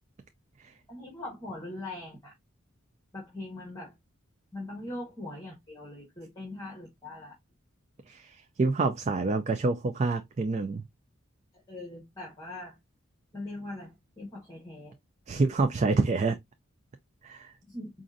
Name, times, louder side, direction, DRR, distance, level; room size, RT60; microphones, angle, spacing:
voice 1, 0.9-2.3 3.1-3.9 4.5-7.3 11.5-12.8 13.3-15.0 17.6-17.9, left 2 dB, 15° left, 1.5 m, -41 dB
voice 2, 8.1-10.8 15.3-16.4 17.2-17.5, right 3 dB, 35° right, 0.3 m, -27 dB
5.0 x 2.5 x 2.5 m
head